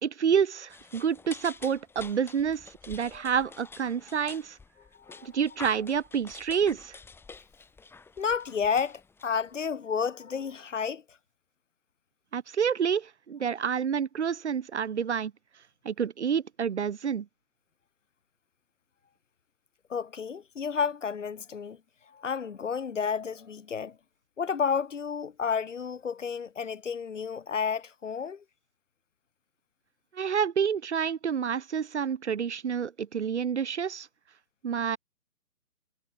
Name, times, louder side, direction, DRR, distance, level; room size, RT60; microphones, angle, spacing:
voice 1, 0.0-4.6 5.2-7.0 12.3-15.3 15.8-17.3 30.1-34.1 34.6-35.0, right 7 dB, 50° right, 2.3 m, -28 dB
sound 1, 0.7-9.7, left 4 dB, 5° left, 4.4 m, -48 dB
voice 2, 5.0-5.3 8.2-11.0 19.9-21.8 22.1-24.0 24.4-28.4, left 6 dB, 55° left, 4.4 m, -31 dB
figure-of-eight pair, 135°, 44 cm